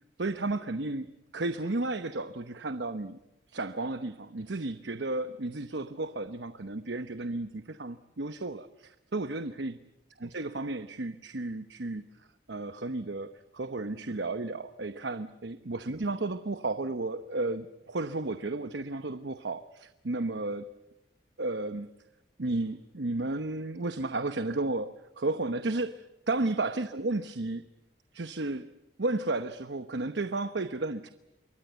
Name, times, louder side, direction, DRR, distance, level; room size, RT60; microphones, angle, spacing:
voice 1, 0.2-3.2 3.5-9.8 10.2-20.7 21.4-21.9 22.4-27.6 28.1-28.7 29.0-31.1, right 2 dB, 70° right, 11 dB, 1.0 m, -33 dB
27.5 x 23.0 x 8.1 m, 0.90 s
head